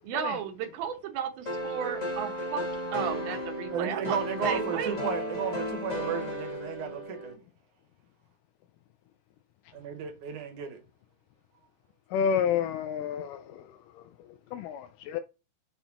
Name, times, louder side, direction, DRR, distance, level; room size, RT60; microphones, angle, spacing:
voice 1, 0.0-2.6 2.9-4.9, right 8 dB, 90° right, 3.0 m, -34 dB
sound 1, 1.4-7.3, equal, 25° left, 0.8 m, -34 dB
voice 2, 3.7-7.4 9.7-10.8, right 7 dB, 65° right, 2.5 m, -34 dB
voice 3, 12.1-14.0 14.5-15.2, left 7 dB, 85° left, 1.9 m, -30 dB
7.2 x 4.9 x 4.2 m
omnidirectional pair, 4.1 m